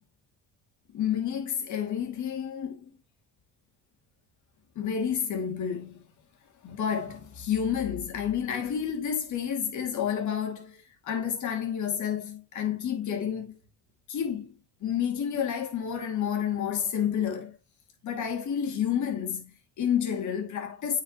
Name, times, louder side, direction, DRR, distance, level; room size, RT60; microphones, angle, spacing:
voice 1, 0.9-2.9 4.7-6.1 6.6-13.6 14.1-17.6 18.0-21.0, left 8 dB, 60° left, 2.7 m, -30 dB
8.8 x 5.1 x 3.1 m
supercardioid pair, 65°, 33 cm